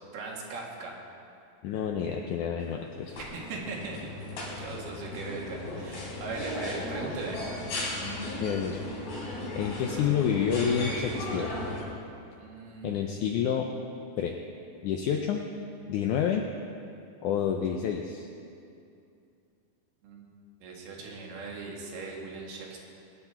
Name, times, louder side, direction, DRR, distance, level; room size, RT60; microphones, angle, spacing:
voice 1, 0.1-1.0 3.2-4.1 4.4-7.4 12.4-13.0 20.0-20.3 20.6-22.8, right 3 dB, 90° right, -2 dB, 3.8 m, -39 dB
voice 2, 1.6-3.2 8.4-8.8 9.6-11.5 12.8-13.7 14.2-14.4 14.8-15.4 15.9-16.4 17.2-18.3, left 8 dB, 90° left, 3 dB, 1.8 m, -28 dB
sound 1, 2.6-11.8, left 1 dB, 70° left, 4.6 m, -36 dB
22.0 x 9.2 x 4.4 m, 2.6 s
omnidirectional pair, 4.3 m